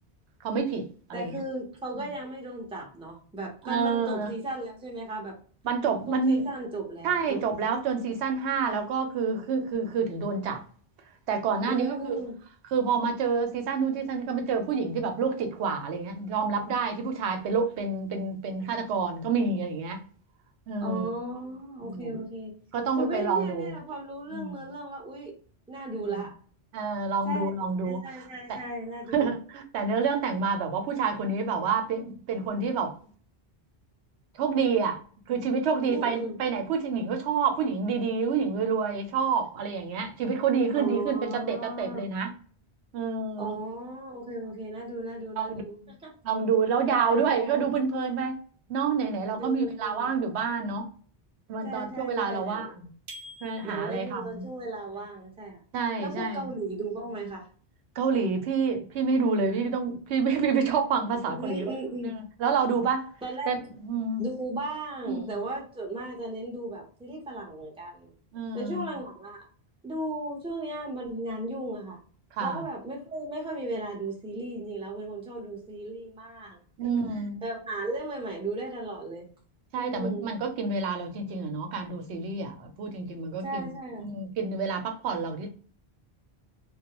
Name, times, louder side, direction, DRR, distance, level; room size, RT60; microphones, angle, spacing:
voice 1, 0.4-1.4 3.6-4.3 5.6-6.5 7.0-10.6 11.3-12.2 12.7-20.0 20.7-21.1 21.9-22.2 22.7-23.7 24.3-24.7 26.1-26.2 26.7-28.6 29.1-32.9 34.4-35.0 35.3-42.3 42.9-43.6 45.4-45.5 46.2-48.4 48.7-50.9 51.5-52.8 53.4-54.5 55.7-56.5 58.0-61.7 62.0-63.1 63.5-64.2 65.1-65.4 68.3-68.9 72.4-72.6 76.8-77.4 79.7-83.6 84.0-85.5, right 5 dB, 90° right, 5 dB, 0.9 m, -28 dB
voice 2, 1.1-5.4 6.1-7.4 11.7-12.4 20.8-22.5 23.0-25.4 25.7-26.4 27.2-27.5 27.8-29.3 35.9-36.4 40.7-42.1 43.4-46.1 46.8-47.7 49.2-50.1 51.6-52.8 53.6-55.6 56.0-57.5 61.3-62.2 63.2-63.5 64.2-68.1 68.5-69.5 69.8-72.0 72.4-79.3 79.8-80.3 83.4-84.1, right 2 dB, 5° right, -2 dB, 0.5 m, -36 dB
sound 1, 53.1-54.2, equal, 55° right, 0.7 m, -46 dB
2.3 x 2.1 x 2.8 m, 0.43 s
omnidirectional pair, 1.1 m